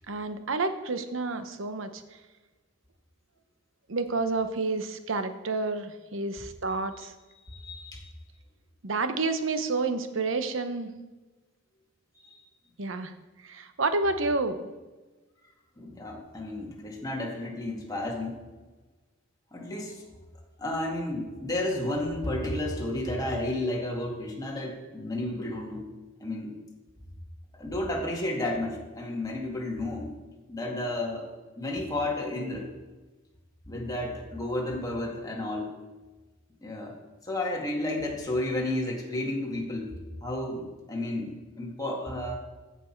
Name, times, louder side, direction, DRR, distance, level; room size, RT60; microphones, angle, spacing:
voice 1, 0.1-2.0 3.9-7.1 8.8-10.9 12.8-13.1 13.4-14.7, right 3 dB, 75° right, 9 dB, 0.9 m, -29 dB
voice 2, 7.5-8.1 12.2-12.4 15.8-18.4 19.5-20.0 20.6-25.9 26.2-26.5 27.5-30.1 30.5-31.3 31.6-32.7 33.7-35.8 36.6-36.9 37.2-39.9 40.2-42.4, left 1 dB, 20° left, -2 dB, 1.9 m, -32 dB
15.0 x 6.1 x 4.5 m, 1.2 s
head